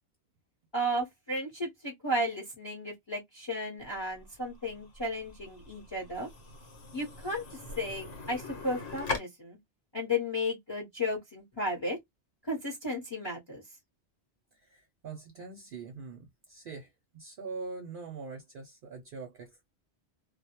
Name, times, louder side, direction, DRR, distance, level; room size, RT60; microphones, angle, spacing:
voice 1, 0.7-6.3 6.9-7.4 7.8-9.6 9.9-12.0 12.5-13.6, left 1 dB, 25° left, 0.8 m, -34 dB
sound 1, 3.8-9.2, left 3 dB, 65° left, 1.1 m, -41 dB
voice 2, 14.5-19.7, right 4 dB, 60° right, 0.6 m, -43 dB
2.2 x 2.1 x 2.8 m
omnidirectional pair, 1.2 m